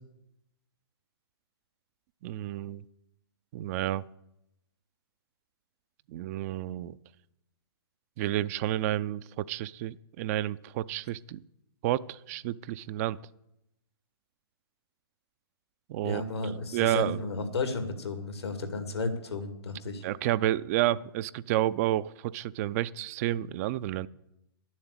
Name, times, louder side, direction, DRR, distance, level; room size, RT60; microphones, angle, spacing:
voice 1, 2.2-2.8 3.5-4.1 6.1-7.0 8.2-11.4 11.8-13.2 15.9-16.2 16.7-17.2 20.0-24.1, right 14 dB, 40° right, 17 dB, 0.4 m, -30 dB
voice 2, 16.0-20.0, left 3 dB, 90° left, 7 dB, 2.2 m, -33 dB
11.0 x 7.3 x 8.1 m, 0.83 s
hypercardioid pair, 130°, 13 cm